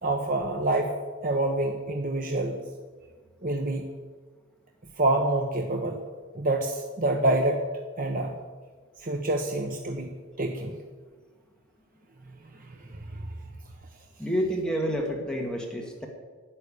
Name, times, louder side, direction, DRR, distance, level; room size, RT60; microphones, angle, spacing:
voice 1, 0.0-0.9 1.2-2.6 3.4-3.9 5.0-6.0 6.3-7.6 8.0-8.4 9.0-10.1 10.4-10.8 12.6-13.3, right 2 dB, 40° right, 3 dB, 1.1 m, -27 dB
voice 2, 14.2-16.1, equal, 5° left, 0 dB, 1.7 m, -29 dB
11.5 x 10.5 x 8.5 m, 1.5 s
head